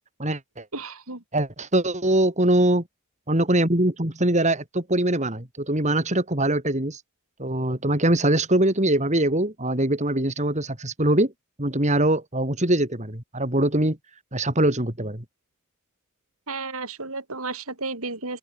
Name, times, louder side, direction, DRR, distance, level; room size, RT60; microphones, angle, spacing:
voice 1, 0.2-0.7 1.3-2.8 3.3-7.0 7.4-11.3 11.6-14.0 14.3-15.2, right 1 dB, 30° right, 3.3 m, -22 dB
voice 2, 0.7-1.2 16.5-18.4, right 3 dB, 70° right, 5.4 m, -33 dB
open air
head